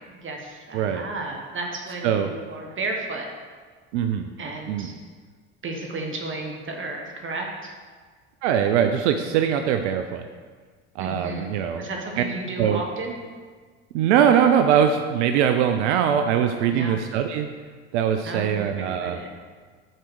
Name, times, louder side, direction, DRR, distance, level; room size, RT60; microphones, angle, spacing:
voice 1, 0.0-3.3 4.4-4.9 5.6-7.7 11.0-13.2 16.7-17.0 18.2-19.3, right 2 dB, 35° right, 1 dB, 1.3 m, -33 dB
voice 2, 0.7-1.1 2.0-2.3 3.9-4.3 4.7-4.9 8.4-10.3 11.0-11.8 12.2-12.3 12.6-12.8 13.9-17.5 17.9-19.2, right 8 dB, 75° right, 7 dB, 0.6 m, -22 dB
6.7 x 4.9 x 6.1 m, 1.5 s
hypercardioid pair, 75°, 36 cm